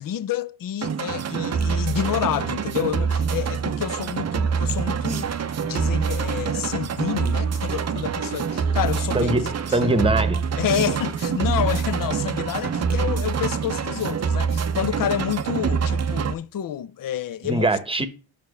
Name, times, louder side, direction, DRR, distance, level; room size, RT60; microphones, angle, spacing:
voice 1, 0.0-5.3 5.6-9.3 9.7-9.9 10.6-17.7 18.0-18.1, left 10 dB, 45° left, 0.6 m, -28 dB
sound 1, 0.8-16.3, right 6 dB, 30° right, 0.7 m, -25 dB
voice 2, 9.1-10.4 17.4-18.1, right 2 dB, 10° right, 1.0 m, -22 dB
5.6 x 5.1 x 6.4 m
supercardioid pair, 75°, 49 cm